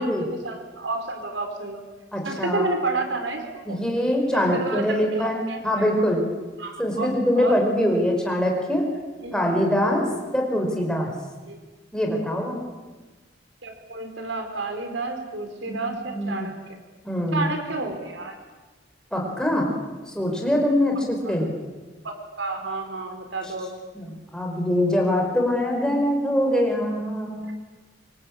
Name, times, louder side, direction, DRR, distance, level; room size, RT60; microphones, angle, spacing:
voice 1, 0.0-1.8 2.2-3.8 4.3-5.9 6.6-7.1 7.4-7.6 9.2-9.5 11.5-11.6 13.6-16.5 17.3-18.4 21.3-21.5 22.0-23.7, right 3 dB, 80° right, 5 dB, 4.6 m, -30 dB
voice 2, 2.1-2.7 3.7-6.2 6.8-8.8 9.3-10.1 10.3-11.1 11.9-12.7 15.6-15.8 16.1-16.5 17.0-17.5 19.1-19.7 20.1-21.5 23.9-27.4, left 1 dB, 5° left, 1 dB, 5.0 m, -23 dB
25.5 x 24.5 x 8.8 m, 1.3 s
head